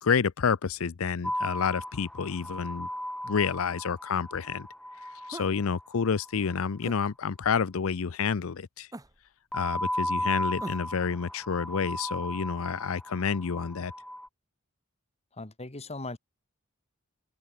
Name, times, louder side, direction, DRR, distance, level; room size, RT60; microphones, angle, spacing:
voice 1, 0.0-2.9 3.2-4.7 5.3-8.9 9.5-13.9, left 6 dB, 70° left, 0.6 m, -29 dB
sound 1, 1.2-6.6 9.5-14.3, left 1 dB, 5° left, 1.6 m, -35 dB
sound 2, 5.3-5.6 6.8-7.0 8.9-9.3 10.6-11.0, right 1 dB, 15° right, 1.4 m, -42 dB
voice 2, 15.3-16.2, left 2 dB, 30° left, 1.9 m, -38 dB
open air
head